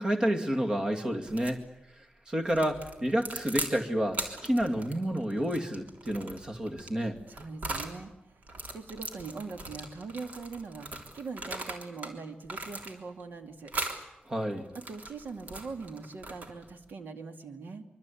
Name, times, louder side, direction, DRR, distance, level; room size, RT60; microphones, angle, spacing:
voice 1, 0.0-1.6 2.0-7.2 14.3-14.7, equal, 25° right, 4 dB, 2.5 m, -30 dB
sound 1, 1.3-1.6 2.5-3.8 4.1-8.0 8.4-12.1 12.4-13.2 13.7-14.0 14.6-16.7, right 2 dB, 50° right, 3.5 m, -39 dB
voice 2, 7.3-13.7 14.7-17.8, right 4 dB, 75° right, 6 dB, 2.4 m, -42 dB
24.5 x 24.5 x 8.6 m, 0.84 s
wide cardioid pair, 165°, 3 cm